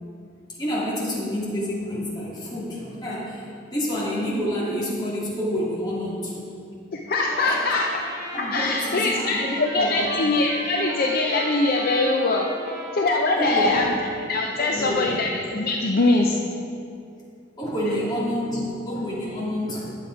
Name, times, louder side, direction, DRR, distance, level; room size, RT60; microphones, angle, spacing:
voice 1, 0.6-6.5 7.4-7.6 8.3-10.1 13.3-13.9 14.6-15.2 17.6-20.0, equal, 20° left, -7 dB, 2.4 m, -28 dB
voice 2, 6.9-7.8 8.4-12.5 12.9-13.9 14.2-16.4, left 2 dB, 50° left, 0 dB, 0.6 m, -22 dB
Trumpet, 7.1-14.2, right 1 dB, 25° right, 1.4 m, -36 dB
10.0 x 7.7 x 4.6 m, 2.5 s
head